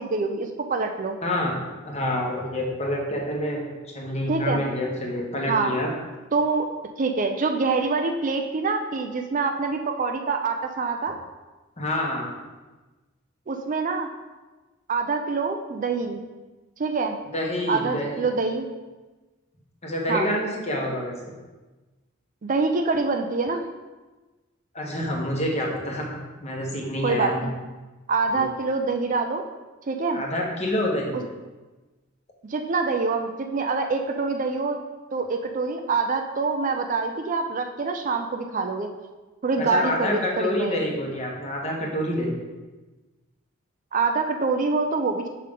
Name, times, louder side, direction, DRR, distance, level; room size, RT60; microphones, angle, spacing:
voice 1, 0.0-1.2 4.3-4.6 5.5-5.7 6.3-6.7 7.0-11.2 13.5-14.1 14.9-16.2 16.8-17.2 17.7-18.7 20.1-20.3 22.4-23.6 27.0-27.5 28.1-29.4 29.9-30.2 31.1-31.2 32.5-34.8 35.1-38.9 39.4-40.8 43.9-45.3, right 4 dB, 40° right, 5 dB, 0.4 m, -25 dB
voice 2, 1.2-3.6 3.9-5.9 11.8-12.3 17.3-18.1 19.8-21.3 24.7-27.5 28.3-28.4 30.1-31.2 39.6-42.4, left 1 dB, 30° left, -1 dB, 1.2 m, -27 dB
6.4 x 5.6 x 3.7 m, 1.2 s
head